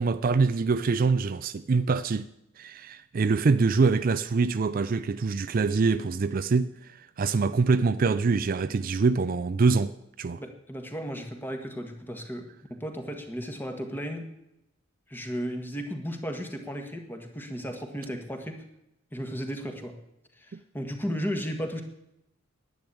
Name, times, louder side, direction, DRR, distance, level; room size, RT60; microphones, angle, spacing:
voice 1, 0.0-2.3 2.6-10.4 20.5-20.6, right 4 dB, 45° right, 0.4 m, -25 dB
voice 2, 10.4-14.3 15.1-18.6 19.1-19.9 20.4-21.8, equal, 10° left, 1.7 m, -35 dB
10.5 x 9.5 x 8.6 m
head